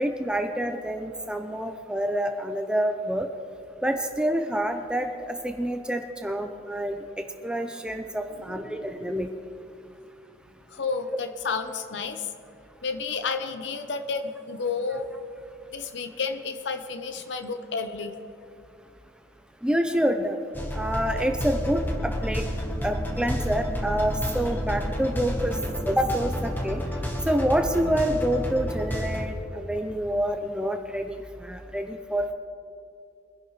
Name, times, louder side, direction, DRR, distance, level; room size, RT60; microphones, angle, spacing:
voice 1, 0.0-3.3 3.8-7.0 7.4-9.3 19.6-20.4 20.7-22.4 22.8-25.6 25.8-26.8 27.3-32.3, right 1 dB, 5° right, 5 dB, 0.5 m, -27 dB
voice 2, 8.5-9.1 10.7-12.3 12.8-15.1 15.7-18.2, left 4 dB, 75° left, 8 dB, 0.7 m, -31 dB
sound 1, 20.5-29.2, equal, 10° left, 1.2 m, -30 dB
23.5 x 11.0 x 3.2 m, 2.5 s
head